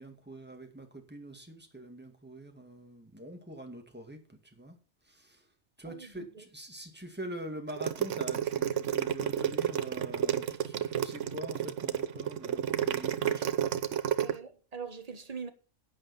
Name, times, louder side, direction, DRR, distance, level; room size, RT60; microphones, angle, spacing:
voice 1, 0.0-4.8 5.1-5.5 5.8-13.5, right 1 dB, 10° right, 2.0 m, -45 dB
voice 2, 5.8-6.4 14.2-15.5, right 5 dB, 30° right, 1.2 m, -42 dB
sound 1, 7.7-14.3, right 9 dB, 75° right, 1.2 m, -30 dB
10.5 x 9.1 x 5.4 m
omnidirectional pair, 1.3 m